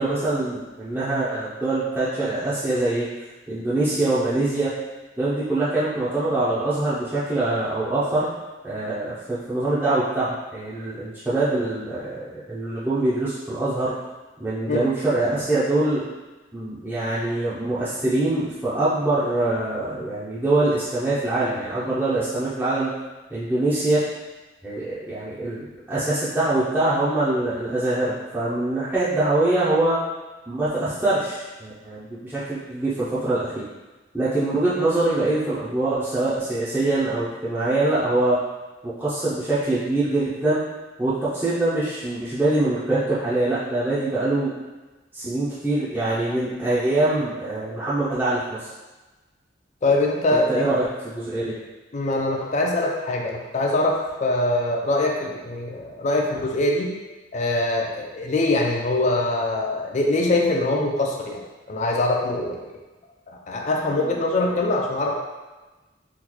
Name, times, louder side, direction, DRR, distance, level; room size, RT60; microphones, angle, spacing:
voice 1, 0.0-3.0 3.5-4.7 5.2-8.3 8.6-13.9 14.4-16.1 16.5-22.9 23.3-24.0 24.6-30.0 30.5-33.7 34.1-38.4 38.8-40.6 41.0-44.5 45.1-48.7 50.3-51.5, right 2 dB, 10° right, -12 dB, 0.5 m, -24 dB
voice 2, 49.8-50.6 51.9-56.9 57.3-61.4 61.7-62.7 63.3-65.2, left 2 dB, 40° left, 0 dB, 0.4 m, -23 dB
3.8 x 2.3 x 3.0 m, 1.2 s
head